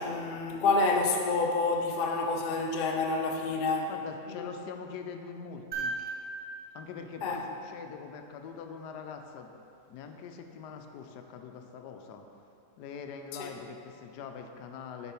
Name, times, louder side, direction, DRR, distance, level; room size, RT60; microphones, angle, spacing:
voice 1, 0.0-3.9 4.3-4.5 7.2-7.4 13.4-13.5, left 3 dB, 65° left, 2 dB, 0.5 m, -28 dB
voice 2, 3.9-6.0 6.7-9.5 9.9-12.3 12.8-15.1, left 6 dB, 90° left, 5 dB, 1.2 m, -43 dB
sound 1, 5.7-8.0 10.1-10.2, right 3 dB, 40° right, 0.8 m, -39 dB
6.8 x 4.7 x 4.3 m, 2.6 s
omnidirectional pair, 1.7 m